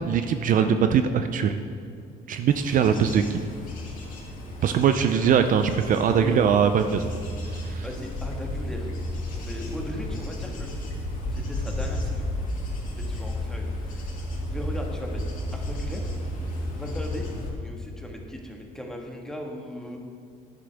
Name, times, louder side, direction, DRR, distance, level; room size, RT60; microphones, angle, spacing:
voice 1, 0.1-1.5 2.3-3.2 4.6-7.1 7.6-7.8, right 7 dB, 55° right, 8 dB, 0.5 m, -21 dB
Bird / Insect / Wind, 2.5-17.5, left 1 dB, 55° left, 2.5 m, -33 dB
voice 2, 6.1-6.4 7.8-8.9 9.4-10.9 11.3-12.3 13.0-14.2 14.4-15.2 15.5-16.1 16.7-17.3 17.6-20.0, equal, 5° left, 0 dB, 1.5 m, -38 dB
11.5 x 9.9 x 3.5 m, 2.4 s
cardioid pair, 110°, 17 cm